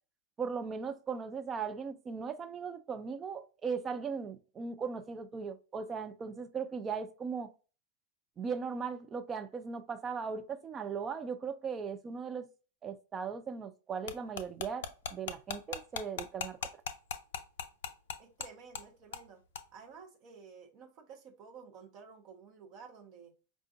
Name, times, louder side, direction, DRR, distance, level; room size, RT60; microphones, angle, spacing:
voice 1, 0.4-7.5 8.4-12.5 12.8-16.8, right 5 dB, 25° right, 0.4 m, -38 dB
sound 1, 14.1-18.5 18.7-18.8 19.1-19.3 19.5-19.6, left 6 dB, 60° left, 0.5 m, -38 dB
voice 2, 18.2-19.4 19.7-23.3, right 6 dB, 40° right, 0.8 m, -52 dB
5.0 x 2.4 x 2.4 m
figure-of-eight pair, 90°, 0 cm